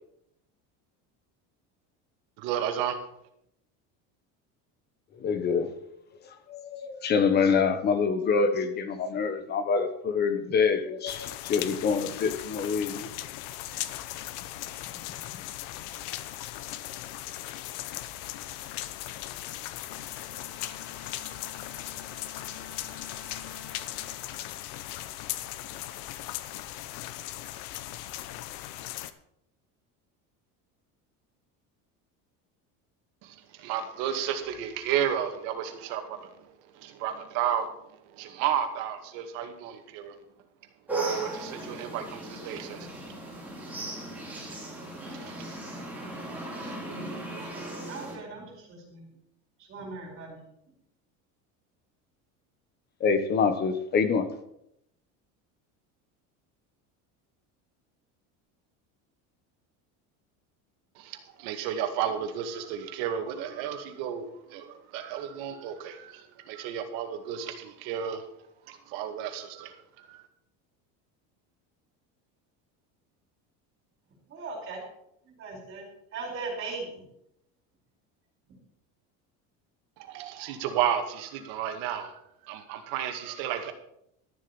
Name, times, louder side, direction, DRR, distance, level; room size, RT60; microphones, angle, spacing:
voice 1, 2.4-3.0 33.2-36.3 36.8-37.7 38.2-40.1 41.2-42.9 44.5-44.6 45.1-45.4 61.0-68.2 68.7-70.2 80.0-82.1 82.5-83.7, right 9 dB, 70° right, 6 dB, 2.1 m, -32 dB
voice 2, 5.2-5.7 6.5-13.1 53.0-54.3, left 5 dB, 30° left, 10 dB, 1.2 m, -26 dB
sound 1, 11.1-29.1, left 14 dB, 70° left, 1.0 m, -38 dB
Bowed string instrument, 19.8-25.3, left 3 dB, 50° left, 3.5 m, -51 dB
sound 2, 40.9-48.2, right 2 dB, 5° right, 4.1 m, -36 dB
voice 3, 47.9-49.1 49.6-50.4 74.3-74.8 75.2-77.0, right 3 dB, 40° right, 0 dB, 5.0 m, -39 dB
13.0 x 7.6 x 7.0 m, 0.76 s
cardioid pair, 175°, 35 cm